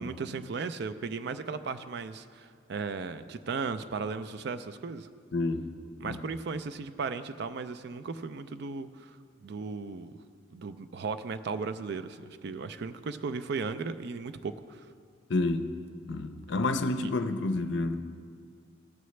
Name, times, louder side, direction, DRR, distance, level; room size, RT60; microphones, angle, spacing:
voice 1, 0.0-5.1 6.0-10.1 10.5-14.9 17.0-17.1, right 4 dB, 55° right, 11 dB, 0.4 m, -36 dB
voice 2, 5.3-5.7 6.0-6.2 15.3-15.7 16.1-18.0, left 2 dB, 60° left, 8 dB, 0.5 m, -29 dB
15.5 x 6.8 x 3.2 m, 2.1 s
head